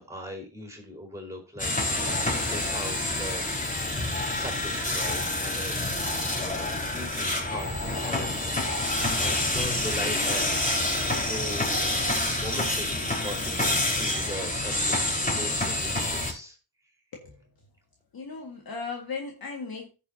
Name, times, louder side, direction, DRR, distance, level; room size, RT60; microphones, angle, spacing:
voice 1, 0.0-1.7 2.2-3.4 4.0-5.7 6.5-10.7 11.2-11.8 12.4-16.6, equal, 5° right, 4.3 m, -40 dB
sound 1, 1.6-16.3, left 1 dB, 15° left, 4.3 m, -27 dB
voice 2, 17.1-17.5 18.1-19.9, left 4 dB, 50° left, 2.0 m, -37 dB
15.5 x 7.0 x 2.8 m
cardioid pair, 100°, 45 cm